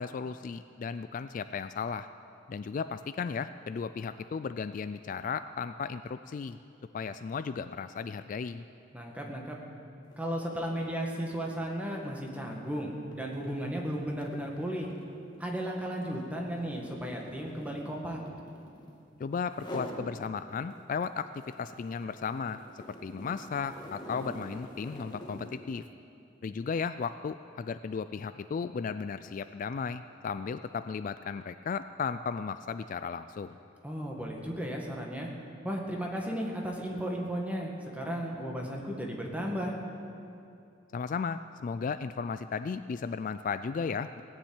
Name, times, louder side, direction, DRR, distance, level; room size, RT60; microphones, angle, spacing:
voice 1, 0.0-2.1 2.5-6.6 6.9-8.6 19.2-22.6 23.0-25.9 26.4-33.6 40.9-44.2, left 5 dB, 45° left, 11 dB, 0.3 m, -35 dB
voice 2, 8.9-9.6 10.2-14.9 15.4-18.2 33.8-35.3 35.6-39.7, equal, 10° right, -1 dB, 1.7 m, -35 dB
sound 1, 10.0-10.3 10.6-19.0 19.5-20.1 20.5-25.7, equal, 25° left, 1.7 m, -47 dB
18.0 x 7.3 x 9.0 m, 2.6 s
head